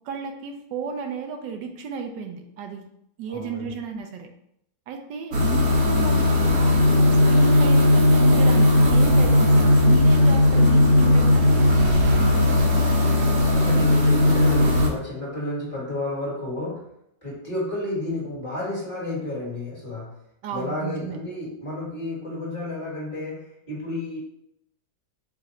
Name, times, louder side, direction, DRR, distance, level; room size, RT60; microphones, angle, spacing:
voice 1, 0.1-2.8 3.2-4.3 4.9-6.8 7.2-12.2 20.4-21.2, right 5 dB, 80° right, 4 dB, 1.2 m, -33 dB
voice 2, 3.3-3.7 13.3-16.8 17.2-20.1 20.5-24.2, left 1 dB, 20° left, -7 dB, 1.5 m, -31 dB
sound 1, 5.3-14.9, left 1 dB, 60° right, 1.2 m, -17 dB
4.9 x 2.5 x 4.2 m, 0.76 s
omnidirectional pair, 1.9 m